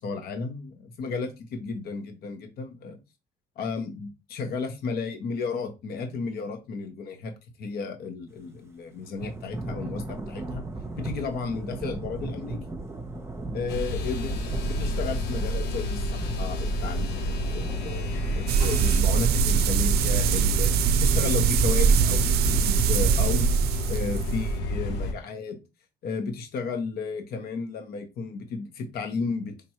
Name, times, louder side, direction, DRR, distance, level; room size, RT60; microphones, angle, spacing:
voice 1, 0.0-3.0 3.6-7.3 7.6-10.6 11.0-12.6 13.5-14.3 14.6-20.7 21.0-23.5 23.9-25.6 26.0-29.5, left 4 dB, 65° left, 6 dB, 1.1 m, -33 dB
Thunder / Rain, 9.2-19.7, right 2 dB, 15° right, 0.9 m, -38 dB
sound 1, 13.7-25.1, equal, 85° left, 1.0 m, -30 dB
sound 2, 18.5-24.5, right 6 dB, 70° right, 0.5 m, -22 dB
5.1 x 3.0 x 3.0 m, 0.26 s
cardioid pair, 110°, 17 cm